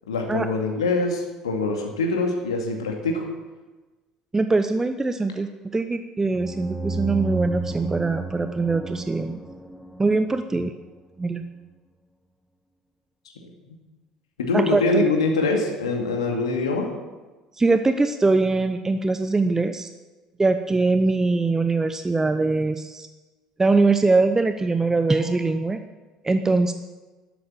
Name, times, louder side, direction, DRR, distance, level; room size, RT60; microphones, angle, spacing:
voice 1, 0.1-3.2 14.4-16.9, left 3 dB, 75° left, 1 dB, 2.2 m, -24 dB
voice 2, 4.3-9.4 10.0-10.7 11.2-11.4 14.5-15.0 17.6-19.9 20.4-23.1 23.6-25.8 26.2-26.7, right 3 dB, 15° right, 9 dB, 0.8 m, -22 dB
sound 1, 6.3-10.9, right 3 dB, ahead, 1.2 m, -33 dB
12.5 x 11.5 x 7.4 m, 1.2 s
figure-of-eight pair, 60°, 3 cm